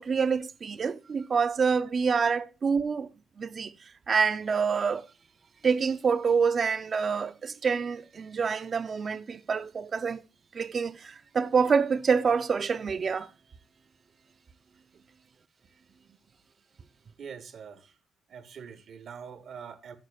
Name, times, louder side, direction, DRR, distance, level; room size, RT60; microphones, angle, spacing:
voice 1, 0.0-3.1 3.4-3.7 4.1-5.1 5.6-10.2 10.5-13.3, right 5 dB, 45° right, 0.5 m, -27 dB
voice 2, 17.2-18.0 18.3-20.0, right 7 dB, 60° right, 1.0 m, -44 dB
10.5 x 6.6 x 2.4 m
cardioid pair, 90°, 0 cm